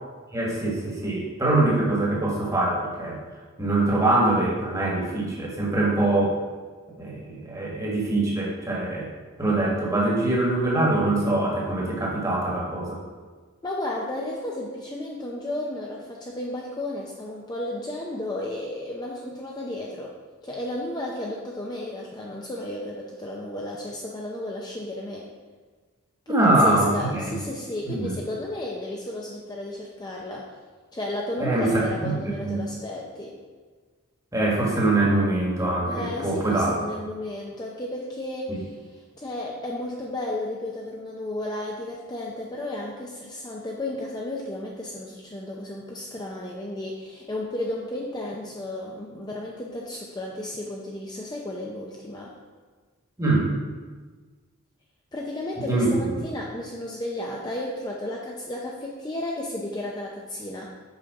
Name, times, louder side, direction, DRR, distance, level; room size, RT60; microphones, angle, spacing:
voice 1, 0.3-3.2 3.6-6.4 7.0-9.1 9.4-13.0 26.3-27.4 27.8-28.1 31.4-32.6 34.3-36.7 38.5-38.6 53.2-53.5 55.6-56.1, right 2 dB, 15° right, -3 dB, 1.4 m, -23 dB
voice 2, 13.6-20.1 20.4-25.3 26.3-30.5 30.9-33.3 35.9-52.3 55.1-60.8, left 1 dB, 20° left, -2 dB, 0.6 m, -33 dB
6.4 x 5.6 x 4.7 m, 1.4 s
head